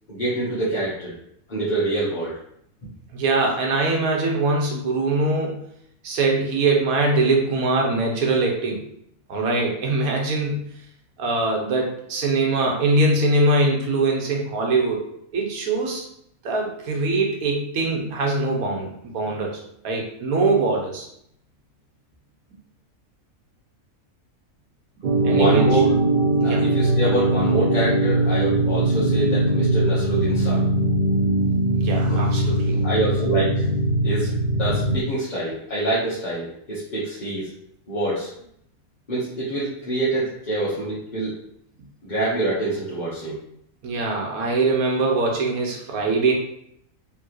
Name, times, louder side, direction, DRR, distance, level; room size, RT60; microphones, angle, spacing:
voice 1, 0.1-1.1 1.5-2.3 25.2-25.9 26.4-30.6 32.1-33.7 34.0-37.5 37.9-38.3 39.1-41.3 42.0-43.4, right 1 dB, 35° left, -9 dB, 1.2 m, -26 dB
voice 2, 3.1-5.6 6.0-8.8 9.3-10.6 11.2-15.0 15.3-16.0 16.4-19.6 19.8-21.1 25.2-25.8 26.4-26.6 31.8-32.8 43.8-46.3, right 3 dB, 80° right, 0 dB, 1.3 m, -22 dB
sound 1, 25.0-35.0, right 2 dB, 50° right, 0.6 m, -21 dB
4.5 x 3.3 x 3.0 m, 0.72 s
omnidirectional pair, 1.5 m